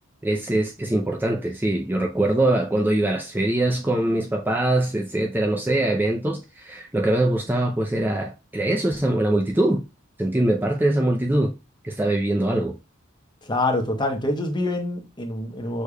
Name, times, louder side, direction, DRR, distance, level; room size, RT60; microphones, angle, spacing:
voice 1, 0.2-9.8 10.2-11.5 11.8-12.8, right 1 dB, 10° right, 0.4 m, -23 dB
voice 2, 13.5-15.8, left 2 dB, 20° left, 0.9 m, -25 dB
6.4 x 3.3 x 2.3 m
head